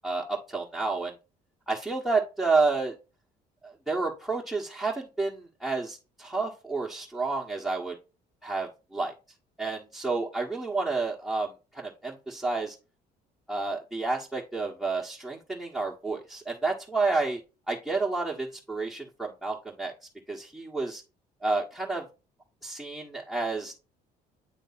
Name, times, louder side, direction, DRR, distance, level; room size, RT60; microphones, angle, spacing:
voice 1, 0.0-1.1 1.7-2.9 3.6-7.9 8.4-9.1 9.6-12.8 13.5-17.4 17.7-19.9 20.3-21.0 21.4-22.0 22.6-23.7, right 3 dB, ahead, -3 dB, 1.4 m, -30 dB
9.6 x 3.3 x 4.1 m, 0.30 s
cardioid pair, 110°, 17 cm